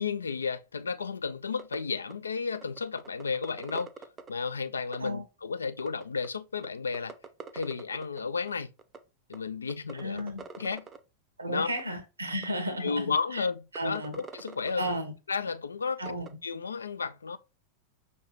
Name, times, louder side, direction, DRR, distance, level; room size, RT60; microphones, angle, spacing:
voice 1, 0.0-3.9 4.3-7.1 7.5-8.7 9.3-10.2 10.6-10.8 11.5-11.7 12.8-14.8 15.3-16.1 16.4-17.4, left 5 dB, 75° left, 0.3 m, -33 dB
sound 1, 1.6-1.8 2.1-2.2 2.5-4.3 4.9-5.1 5.8-6.3 6.6-6.7 6.9-8.2 8.5-8.6 8.8-9.0 9.3-9.4 9.7-11.0 11.8-11.9 12.4-12.5 12.9-13.0 13.4-13.5 13.8-14.7 16.1-16.3, right 6 dB, 20° right, 0.6 m, -43 dB
voice 2, 9.9-10.4 11.4-13.4 13.7-14.2 14.8-15.1 16.0-16.3, equal, 80° right, 1.0 m, -33 dB
5.4 x 3.2 x 3.0 m
figure-of-eight pair, 90°, 0 cm